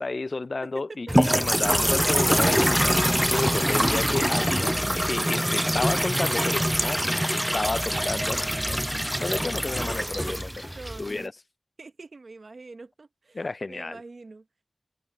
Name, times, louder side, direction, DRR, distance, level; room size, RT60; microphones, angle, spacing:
voice 1, 0.0-8.8 9.2-10.7 11.0-11.3 13.3-14.0, left 3 dB, 65° left, 0.4 m, -32 dB
voice 2, 0.7-1.1 10.7-11.3 11.8-13.4 13.7-14.5, right 3 dB, 80° right, 0.9 m, -44 dB
sound 1, 1.1-11.2, equal, 5° right, 0.4 m, -24 dB
wide cardioid pair, 55°, 0 cm